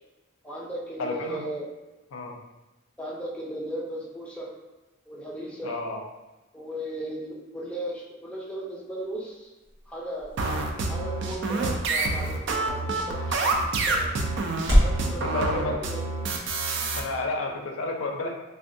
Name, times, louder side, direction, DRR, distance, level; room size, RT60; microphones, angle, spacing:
voice 1, 0.4-1.7 3.0-4.5 5.1-5.8 6.5-9.5 9.9-10.3 10.9-13.5 13.9-14.1 14.8-16.0, right 1 dB, 5° left, -4 dB, 0.5 m, -36 dB
voice 2, 1.0-1.4 2.1-2.4 5.6-6.0 15.2-15.7 17.0-18.3, left 2 dB, 85° left, 2 dB, 0.4 m, -31 dB
sound 1, 8.8-15.0, equal, 90° right, 1.2 m, -30 dB
sound 2, 10.4-17.0, right 3 dB, 65° right, 0.4 m, -27 dB
3.4 x 2.2 x 2.6 m, 1.1 s
head